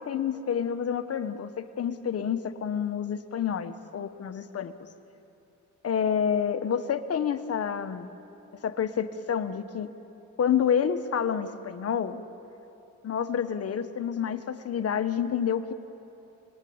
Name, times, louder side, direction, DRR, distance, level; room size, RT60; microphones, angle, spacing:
voice 1, 0.0-4.7 5.8-8.1 8.6-9.9 10.4-12.2 13.0-15.7, left 8 dB, 55° left, 10 dB, 1.3 m, -28 dB
28.5 x 21.0 x 8.8 m, 2.9 s
cardioid pair, 90°, 30 cm